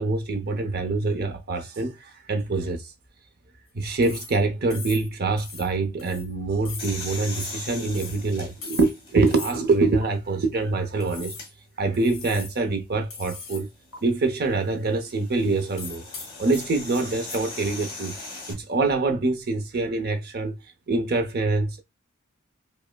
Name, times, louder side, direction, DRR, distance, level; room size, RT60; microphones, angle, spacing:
voice 1, 0.0-2.8 3.7-11.3 11.8-13.7 14.0-16.0 16.4-18.1 18.5-20.6 20.9-21.8, right 3 dB, 50° right, 0.8 m, -25 dB
sound 1, 4.0-4.4 4.7-5.1 5.4-5.7 6.0-6.3 6.6-6.9 7.3-7.6 7.9-8.2 8.6-9.0 9.3-9.6 10.0-10.1 11.0-11.5 11.9-12.6 13.1-13.7 13.9-14.0 15.8-17.4, left 5 dB, 65° left, 1.2 m, -40 dB
sound 2, 6.8-9.7 10.3-10.4 11.2-11.5 13.6-18.5, left 3 dB, 25° left, 1.2 m, -40 dB
5.1 x 2.2 x 2.2 m
head